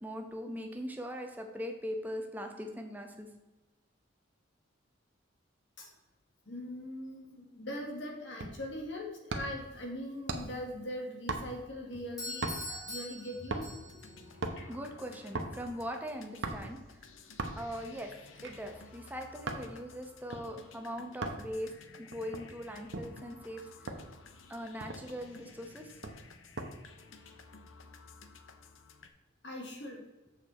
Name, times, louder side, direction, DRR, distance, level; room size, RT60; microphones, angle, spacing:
voice 1, 0.0-3.3 14.1-14.3 14.7-17.0 17.6-18.1 18.4-23.7 24.5-26.0, equal, 10° right, 3 dB, 0.9 m, -41 dB
voice 2, 6.5-13.7 14.4-14.7 29.4-30.0, left 1 dB, 65° left, 1 dB, 1.8 m, -41 dB
sound 1, 8.4-8.7 9.3-9.7 10.3-10.6 11.3-11.8 12.4-12.8 13.5-13.9 14.2-14.6 15.3-15.6 16.4-16.8 17.4-17.8 18.3-19.7 20.3-20.5 21.2-21.5 22.1-23.1 23.9-24.1 24.5-24.6 24.8-25.2 26.0-26.7 27.1-27.4, right 2 dB, 70° right, 0.9 m, -38 dB
Doorbell, 12.2-14.2, left 1 dB, 20° left, 2.4 m, -42 dB
sound 2, 13.8-29.1, left 4 dB, 85° left, 0.8 m, -55 dB
6.8 x 6.8 x 4.3 m, 1.1 s
head